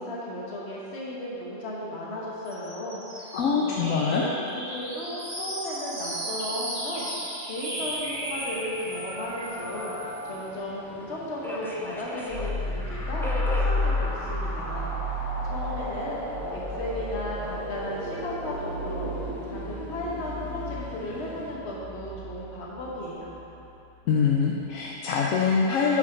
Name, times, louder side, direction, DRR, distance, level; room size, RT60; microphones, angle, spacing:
voice 1, 0.0-14.9 15.5-16.2 16.5-19.1 19.5-23.3, left 1 dB, 45° left, -5 dB, 1.5 m, -35 dB
sound 1, 2.4-10.4, right 1 dB, 40° right, 1.9 m, -36 dB
voice 2, 3.3-4.3 24.1-26.0, left 5 dB, 70° left, -2 dB, 1.0 m, -24 dB
Subway metro underground, 7.8-21.5, equal, 5° left, 0.4 m, -44 dB
sound 2, 12.3-23.6, left 1 dB, 25° left, 1.4 m, -32 dB
8.4 x 5.0 x 5.4 m, 2.9 s
omnidirectional pair, 1.6 m